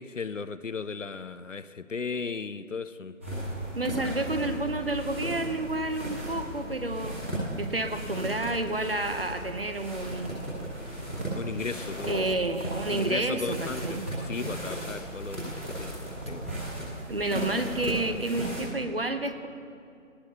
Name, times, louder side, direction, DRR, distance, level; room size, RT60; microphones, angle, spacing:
voice 1, 0.0-3.2 11.3-12.3 12.9-16.5, left 5 dB, 60° left, 13 dB, 0.6 m, -36 dB
sound 1, 3.2-18.6, right 1 dB, 10° right, 1.4 m, -36 dB
voice 2, 3.7-10.4 12.1-14.1 17.1-19.5, right 2 dB, 45° right, 8 dB, 0.9 m, -30 dB
19.0 x 18.5 x 2.9 m, 2.4 s
figure-of-eight pair, 160°, 42 cm